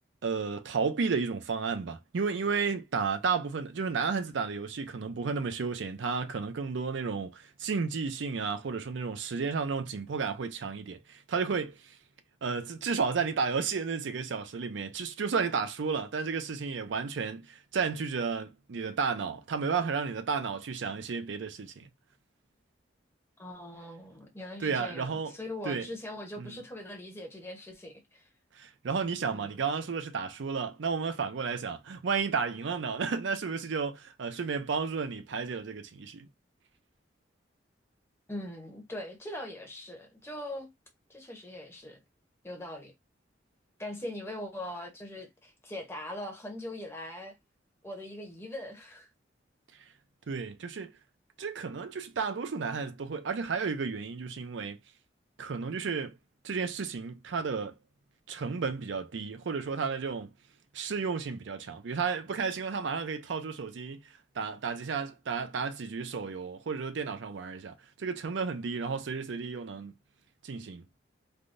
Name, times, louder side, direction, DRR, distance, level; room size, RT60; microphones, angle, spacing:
voice 1, 0.2-12.0 12.4-21.9 24.6-25.3 25.6-25.9 26.4-26.6 28.6-36.3 50.3-50.9 51.4-54.8 55.4-56.2 56.4-57.7 58.3-60.3 60.7-69.9 70.4-70.8, right 5 dB, 75° right, 0.5 m, -32 dB
voice 2, 23.4-28.3 29.3-29.5 38.3-40.7 41.1-42.0 42.4-42.9 43.8-47.4 47.8-49.1, left 1 dB, 15° left, 0.8 m, -41 dB
3.4 x 2.2 x 2.5 m
head